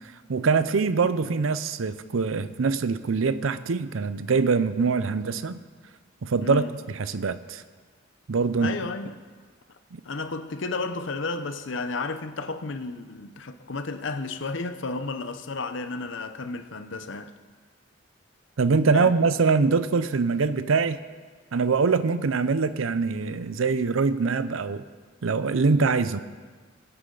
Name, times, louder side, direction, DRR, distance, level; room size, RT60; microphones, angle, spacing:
voice 1, 0.3-5.6 6.2-7.6 8.3-8.8 9.9-10.0 18.6-21.0 21.5-24.8 25.2-26.2, right 4 dB, 90° right, 0.6 m, -23 dB
voice 2, 8.6-9.2 10.0-17.3 18.9-19.1, left 3 dB, 70° left, 0.8 m, -32 dB
22.0 x 8.2 x 3.9 m
head